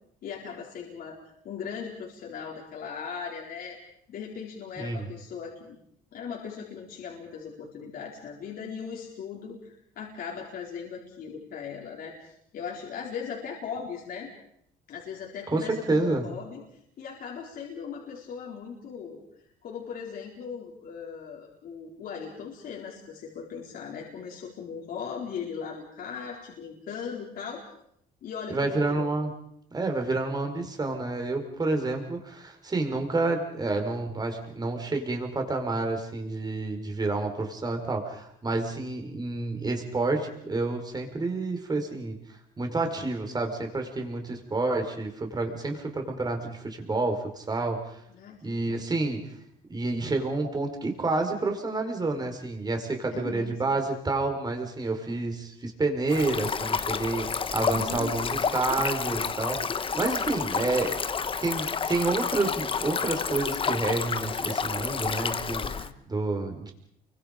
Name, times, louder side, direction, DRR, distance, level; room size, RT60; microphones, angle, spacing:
voice 1, 0.2-1.2 1.4-3.8 4.1-5.8 6.1-14.3 14.9-19.2 19.6-27.6 28.2-29.1 48.1-48.8 53.1-53.6 57.7-58.4 64.8-65.2 65.5-66.0, left 6 dB, 60° left, -2 dB, 4.5 m, -39 dB
voice 2, 4.8-5.1 15.5-16.2 28.5-29.3 29.7-42.2 42.6-48.0 48.4-49.2 49.7-61.0 61.4-66.7, right 3 dB, 25° right, 5 dB, 4.7 m, -29 dB
Stream, 56.1-65.9, left 6 dB, 30° left, 1.1 m, -30 dB
29.5 x 24.0 x 5.2 m, 0.71 s
cardioid pair, 110°, 17 cm